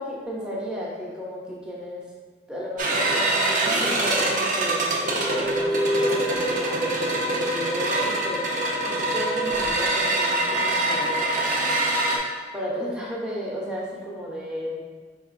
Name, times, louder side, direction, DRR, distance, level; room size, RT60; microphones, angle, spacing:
voice 1, 0.0-2.0 2.5-8.4 8.9-11.8 12.5-14.8, equal, 5° right, -5 dB, 0.7 m, -33 dB
sound 1, 2.8-12.2, right 1 dB, 40° right, 0.6 m, -24 dB
4.6 x 3.7 x 2.5 m, 1.5 s
head